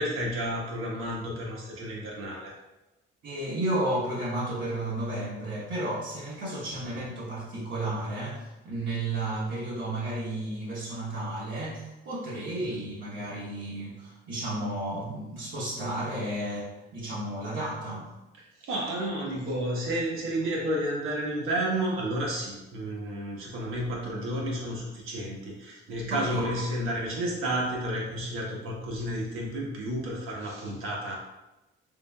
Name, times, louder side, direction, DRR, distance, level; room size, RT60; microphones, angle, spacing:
voice 1, 0.0-2.5 18.4-31.1, right 1 dB, 80° right, -3 dB, 1.1 m, -31 dB
voice 2, 3.2-18.1 26.1-26.4, right 1 dB, 60° right, -8 dB, 0.9 m, -32 dB
3.8 x 3.4 x 2.2 m, 1.0 s
cardioid pair, 115°, 21 cm